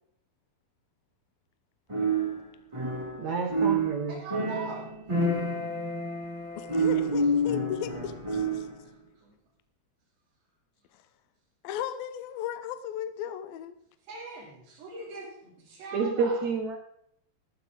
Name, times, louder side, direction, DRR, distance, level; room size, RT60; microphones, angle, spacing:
sound 1, 1.9-8.8, right 2 dB, 20° right, 0.9 m, -28 dB
voice 1, 3.2-4.2 15.9-16.8, right 4 dB, 60° right, 3 dB, 2.0 m, -29 dB
voice 2, 4.1-4.9 8.8-9.3 14.1-16.5, right 3 dB, 85° right, -6 dB, 5.0 m, -42 dB
voice 3, 6.6-8.7 10.9-11.0 11.6-13.8, left 10 dB, 75° left, 10 dB, 2.4 m, -36 dB
14.5 x 13.5 x 3.7 m, 0.72 s
omnidirectional pair, 4.7 m